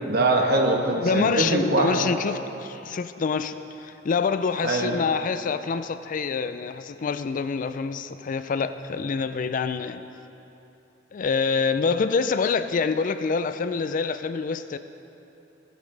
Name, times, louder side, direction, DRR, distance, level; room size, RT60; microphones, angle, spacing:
voice 1, 0.0-2.0 4.6-4.9, right 2 dB, 60° right, 2 dB, 1.2 m, -22 dB
voice 2, 1.0-10.0 11.1-14.8, left 5 dB, 45° left, 11 dB, 0.4 m, -26 dB
18.5 x 8.1 x 3.3 m, 2.9 s
head